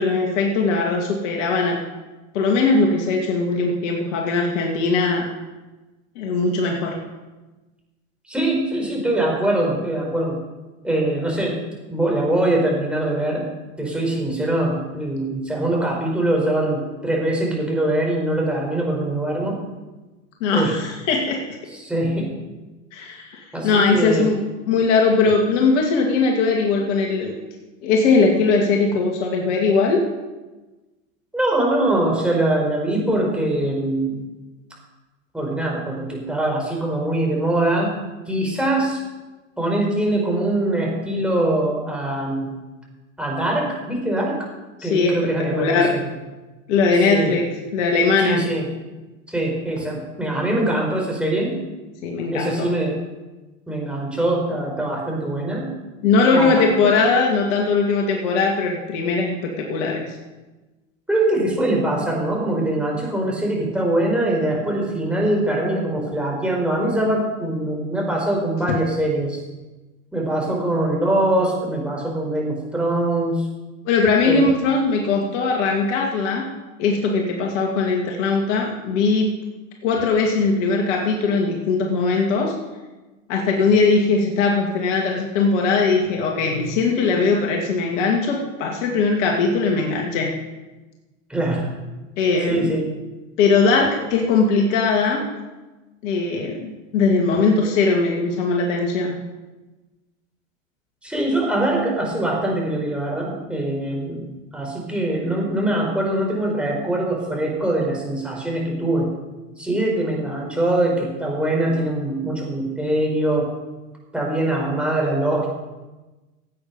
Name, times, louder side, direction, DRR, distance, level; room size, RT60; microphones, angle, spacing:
voice 1, 0.0-1.8 2.3-5.3 6.2-7.0 20.4-21.5 22.9-24.4 24.7-27.3 27.8-30.0 44.8-46.0 46.7-47.5 47.7-48.4 52.0-52.7 56.0-60.2 73.9-76.5 76.8-79.3 79.8-82.5 83.3-90.3 92.2-92.7 93.4-95.2 96.0-99.2, left 4 dB, 60° left, 0 dB, 2.4 m, -20 dB
voice 2, 8.3-10.4 10.8-11.6 11.9-13.5 13.8-19.6 20.5-20.7 21.7-22.3 23.5-24.3 31.3-34.2 35.3-37.9 38.3-39.0 39.6-42.5 43.2-44.5 44.8-46.0 47.1-47.3 48.2-48.7 49.3-51.6 52.3-52.9 53.7-55.7 56.3-56.9 61.1-69.4 70.1-73.5 74.2-74.4 91.3-91.7 92.4-92.9 101.0-104.3 104.5-109.1 109.6-113.5 114.1-115.5, right 1 dB, 5° right, -2 dB, 4.7 m, -22 dB
16.5 x 8.8 x 5.4 m, 1.1 s
hypercardioid pair, 105°, 40 cm